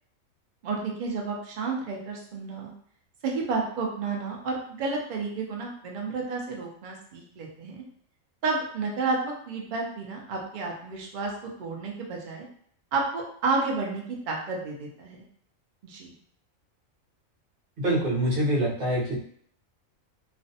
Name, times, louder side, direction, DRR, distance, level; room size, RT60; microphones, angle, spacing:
voice 1, 0.6-2.7 3.2-7.8 8.4-11.3 11.6-12.5 12.9-15.2 15.8-16.1, right 4 dB, 90° right, -1 dB, 0.4 m, -31 dB
voice 2, 17.8-19.2, right 1 dB, 50° right, -3 dB, 0.7 m, -25 dB
2.4 x 2.1 x 2.6 m, 0.63 s
omnidirectional pair, 1.4 m